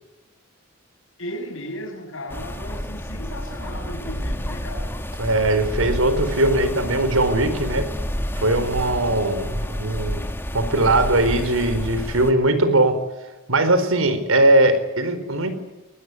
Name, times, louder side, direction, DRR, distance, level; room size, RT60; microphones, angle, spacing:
voice 1, 1.2-5.0, equal, 70° left, 2 dB, 6.6 m, -35 dB
sound 1, 2.3-12.3, equal, 10° left, 2.1 m, -29 dB
voice 2, 5.2-7.9 8.4-10.3 10.5-13.0 13.5-15.5, right 2 dB, 80° right, 11 dB, 4.3 m, -20 dB
23.0 x 19.5 x 9.8 m, 1.1 s
head